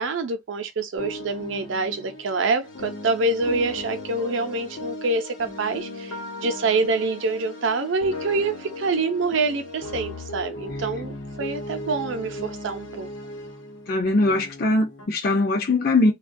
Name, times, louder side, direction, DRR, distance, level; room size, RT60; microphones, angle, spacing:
voice 1, 0.0-6.1 6.4-13.1, right 3 dB, 70° right, 0.5 m, -26 dB
sound 1, 1.0-15.1, left 2 dB, 80° left, 0.8 m, -36 dB
voice 2, 13.9-16.1, left 2 dB, 45° left, 0.5 m, -21 dB
2.2 x 2.1 x 2.5 m
head